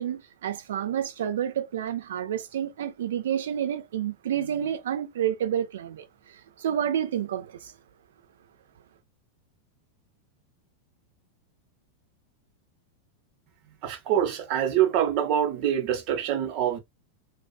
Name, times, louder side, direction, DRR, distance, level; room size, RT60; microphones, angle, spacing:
voice 1, 0.0-7.7, right 9 dB, 60° right, 0.5 m, -29 dB
voice 2, 13.8-16.8, right 10 dB, 45° right, 0.8 m, -25 dB
2.7 x 2.5 x 2.3 m
figure-of-eight pair, 90°, 0 cm